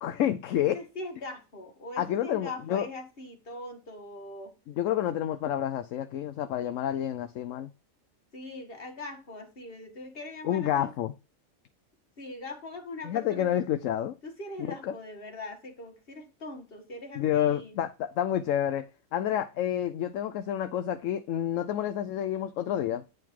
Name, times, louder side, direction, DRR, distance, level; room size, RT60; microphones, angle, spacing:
voice 1, 0.0-0.8 2.0-2.9 4.8-7.7 10.4-11.1 13.0-14.1 14.9-15.0 17.1-18.8 19.1-23.0, left 11 dB, 70° left, 0.9 m, -29 dB
voice 2, 0.6-4.5 8.3-10.9 12.2-13.6 14.2-17.8, left 2 dB, 45° left, 1.8 m, -41 dB
9.2 x 4.6 x 3.7 m
omnidirectional pair, 1.4 m